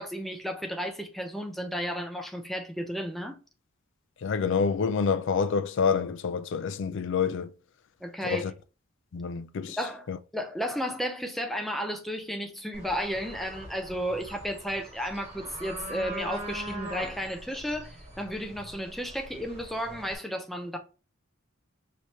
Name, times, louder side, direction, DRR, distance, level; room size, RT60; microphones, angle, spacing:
voice 1, 0.0-3.4 8.0-8.4 9.8-10.1 10.3-20.8, equal, ahead, 0.5 m, -33 dB
voice 2, 4.2-7.5 8.2-8.5 9.1-9.8 10.1-10.2, left 6 dB, 60° left, 0.4 m, -27 dB
sound 1, 12.7-20.2, right 1 dB, 30° right, 1.3 m, -42 dB
5.0 x 2.8 x 3.0 m
head